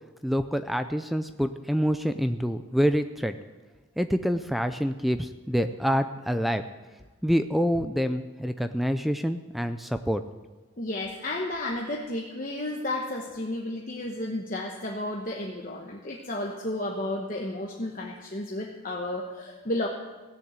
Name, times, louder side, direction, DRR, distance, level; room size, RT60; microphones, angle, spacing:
voice 1, 0.2-3.4 4.0-6.6 7.2-10.2, equal, ahead, 9 dB, 0.4 m, -26 dB
voice 2, 10.8-19.9, left 1 dB, 40° left, -1 dB, 1.1 m, -32 dB
16.5 x 7.0 x 8.1 m, 1.2 s
head